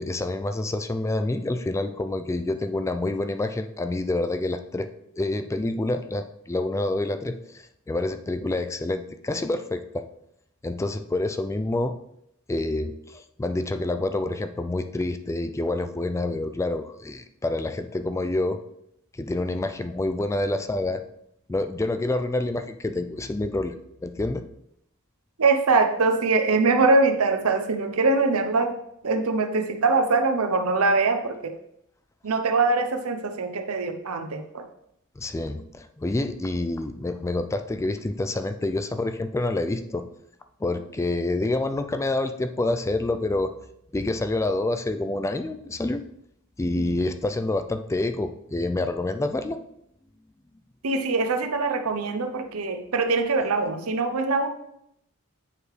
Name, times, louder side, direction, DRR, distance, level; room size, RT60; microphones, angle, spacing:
voice 1, 0.0-4.9 5.2-10.0 10.6-12.0 12.5-18.6 19.1-21.0 21.5-23.7 24.0-24.4 35.2-40.0 40.6-43.5 43.9-46.0 46.6-49.6, left 2 dB, 15° left, 8 dB, 0.3 m, -27 dB
voice 2, 25.4-28.7 29.0-31.5 32.2-34.6 50.8-54.5, right 3 dB, 90° right, 7 dB, 0.8 m, -23 dB
8.5 x 4.8 x 3.2 m, 0.76 s
head